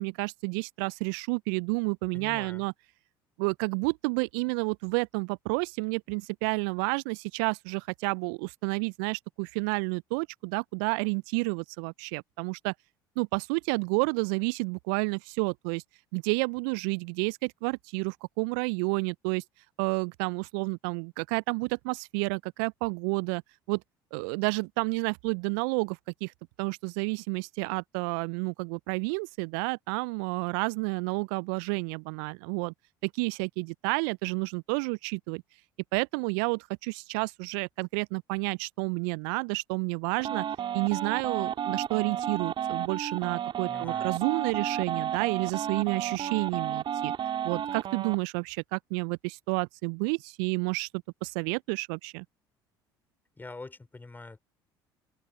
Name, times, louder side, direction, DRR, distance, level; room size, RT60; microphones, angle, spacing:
voice 1, 0.0-2.7 3.4-12.7 13.2-15.8 16.1-19.4 19.8-23.4 23.7-23.8 24.1-26.3 26.6-32.7 33.0-35.4 35.9-40.4 40.7-47.1 47.4-50.9 51.2-52.2, right 35 dB, 65° right, 0.6 m, -30 dB
voice 2, 2.1-2.7 43.7-44.1 53.4-54.4, left 3 dB, 15° left, 4.7 m, -44 dB
sound 1, 40.2-48.2, right 9 dB, 45° right, 3.1 m, -32 dB
open air
figure-of-eight pair, 60°, 12 cm